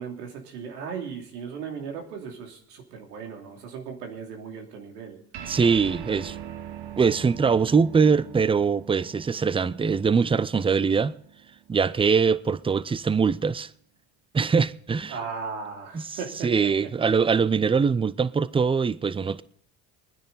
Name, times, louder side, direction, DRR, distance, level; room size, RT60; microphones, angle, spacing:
voice 1, 0.0-5.2 15.1-16.7, right 6 dB, 85° right, 3.0 m, -37 dB
sound 1, 5.3-12.1, right 10 dB, 60° right, 1.3 m, -42 dB
voice 2, 5.5-6.4 7.0-11.2 11.7-13.7 14.3-15.2 15.9-19.4, right 5 dB, 10° right, 0.5 m, -22 dB
23.0 x 10.0 x 4.1 m
hypercardioid pair, 70°, 46 cm